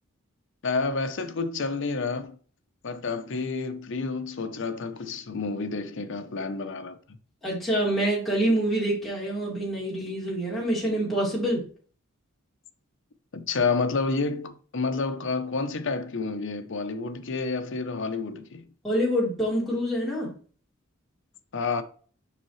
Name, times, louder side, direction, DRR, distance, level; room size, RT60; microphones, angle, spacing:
voice 1, 0.6-2.4 2.8-7.0 13.3-18.7 21.5-21.8, left 4 dB, 60° left, 0.7 m, -29 dB
voice 2, 7.4-11.6 18.8-20.3, right 1 dB, ahead, 3.6 m, -26 dB
7.1 x 5.6 x 3.1 m
head